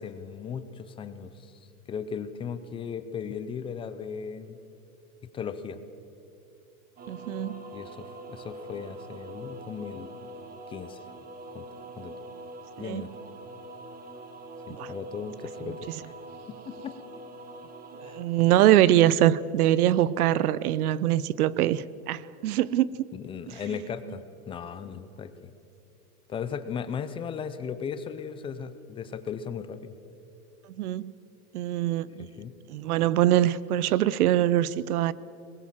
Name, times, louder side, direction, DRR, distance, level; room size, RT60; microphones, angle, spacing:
voice 1, 0.0-4.6 5.3-5.8 7.7-10.1 10.7-11.0 11.5-11.7 12.0-12.1 12.8-13.1 14.7-16.1 16.5-16.9 18.0-18.2 23.1-25.5 26.3-29.9 32.2-32.5, left 7 dB, 10° left, 11 dB, 0.5 m, -37 dB
sound 1, 7.0-18.3, right 1 dB, 20° right, 1.5 m, -43 dB
voice 2, 7.1-7.7 12.8-13.1 14.7-14.9 15.6-15.7 18.0-23.1 30.8-31.1 31.5-32.3 32.7-35.1, right 13 dB, 80° right, 20 dB, 0.9 m, -23 dB
22.0 x 19.5 x 7.4 m, 2.8 s
supercardioid pair, 150°, 44 cm